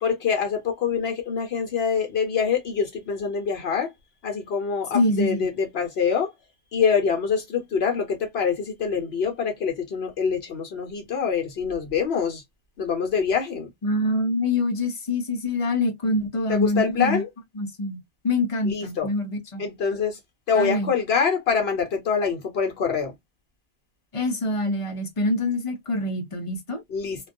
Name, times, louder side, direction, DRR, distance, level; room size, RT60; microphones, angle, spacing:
voice 1, 0.0-3.9 4.2-6.3 6.7-12.4 12.8-13.7 16.5-17.3 18.6-19.1 19.6-20.2 20.5-23.1 26.9-27.3, left 6 dB, 65° left, 0.9 m, -25 dB
voice 2, 4.9-5.5 13.8-17.2 17.6-18.0 18.2-19.6 20.5-20.9 24.1-26.8, left 2 dB, 40° left, 0.5 m, -25 dB
2.2 x 2.2 x 2.5 m
omnidirectional pair, 1.1 m